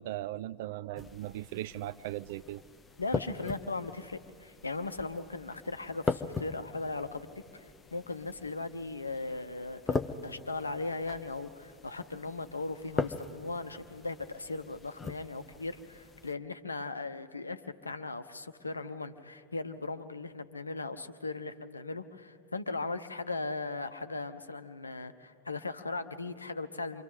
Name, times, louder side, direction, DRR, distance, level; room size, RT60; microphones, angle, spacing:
voice 1, 0.0-2.6, right 14 dB, 50° right, 16 dB, 0.4 m, -38 dB
sound 1, 0.9-16.3, left 4 dB, 15° left, 0.8 m, -40 dB
voice 2, 3.0-7.3 7.5-27.0, left 3 dB, 80° left, 10 dB, 0.8 m, -38 dB
29.5 x 24.5 x 3.9 m, 2.4 s
figure-of-eight pair, 90°, 0 cm